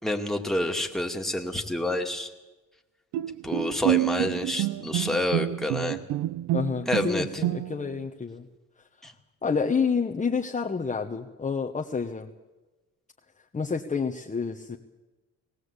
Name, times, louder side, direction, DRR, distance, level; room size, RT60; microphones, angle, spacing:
voice 1, 0.0-2.3 3.4-6.0 6.9-7.3 9.0-9.1, left 1 dB, ahead, 3 dB, 2.2 m, -28 dB
Bowed string instrument, 3.1-8.0, right 16 dB, 80° right, 0.6 m, -28 dB
voice 2, 6.5-8.5 9.4-12.3 13.5-14.8, left 5 dB, 25° left, 1 dB, 1.2 m, -29 dB
19.5 x 17.5 x 8.3 m, 1.1 s
cardioid pair, 90°, 30 cm